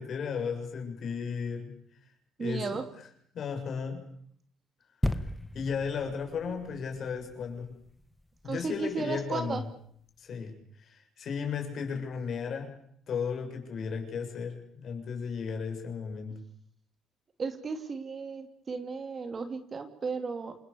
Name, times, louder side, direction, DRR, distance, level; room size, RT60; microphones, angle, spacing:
voice 1, 0.0-1.8 2.4-2.8 3.3-4.1 5.5-7.7 8.4-9.6 10.2-12.7 13.1-16.4, left 6 dB, 50° left, 4 dB, 6.5 m, -35 dB
voice 2, 2.4-2.8 8.4-9.6 17.4-20.6, right 4 dB, 30° right, 9 dB, 2.7 m, -34 dB
sound 1, 5.0-8.6 9.2-9.3, left 1 dB, 5° left, 1.6 m, -35 dB
28.0 x 26.0 x 7.0 m, 0.67 s
cardioid pair, 135°, 0 cm